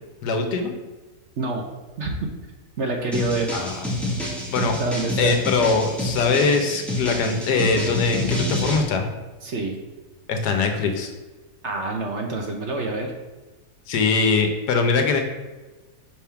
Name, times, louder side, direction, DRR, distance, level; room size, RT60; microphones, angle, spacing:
voice 1, 0.2-0.7 3.5-3.8 4.5-4.8 5.2-9.1 10.3-11.1 13.9-15.2, left 4 dB, 85° left, 5 dB, 1.4 m, -22 dB
voice 2, 1.4-1.7 2.0-2.3 2.8-3.5 4.8-5.4 9.4-9.8 11.6-13.1, right 3 dB, 55° right, 2 dB, 0.9 m, -27 dB
sound 1, 3.1-8.8, left 1 dB, ahead, 1.1 m, -28 dB
5.4 x 3.5 x 5.7 m, 1.2 s
omnidirectional pair, 1.7 m